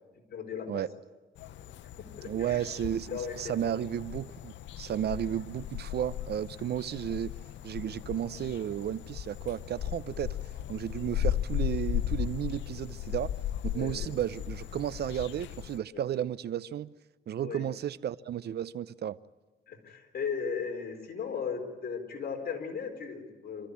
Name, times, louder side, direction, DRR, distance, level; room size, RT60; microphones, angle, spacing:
voice 1, 0.3-0.8 1.5-1.7 2.2-2.6 3.1-3.7 13.7-13.9 15.9-16.0 17.4-17.7 19.7-23.7, left 6 dB, 55° left, 4.6 m, -37 dB
sound 1, 1.4-15.8, left 12 dB, 85° left, 0.7 m, -36 dB
voice 2, 2.2-7.3 7.6-10.4 10.7-13.3 13.6-16.9 17.3-19.2, right 10 dB, 65° right, 0.7 m, -33 dB
26.5 x 14.0 x 9.9 m
cardioid pair, 95°, 19 cm